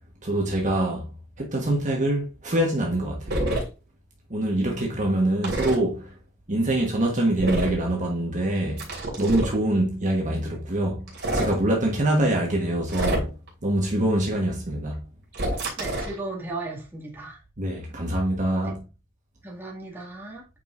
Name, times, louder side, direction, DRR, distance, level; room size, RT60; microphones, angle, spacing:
voice 1, 0.2-1.1 1.4-3.5 4.3-6.1 6.5-8.8 9.2-11.0 11.3-13.3 13.6-15.0 17.6-18.8, right 1 dB, 35° right, 1.4 m, -24 dB
sound 1, 3.3-3.6 5.4-5.8 7.4-7.8 8.8-9.6 11.1-11.5 12.9-13.5 15.3-16.2, right 1 dB, 55° right, 3.0 m, -27 dB
voice 2, 15.8-17.4 19.4-20.5, right 2 dB, 10° right, 2.0 m, -35 dB
8.9 x 4.8 x 2.6 m
head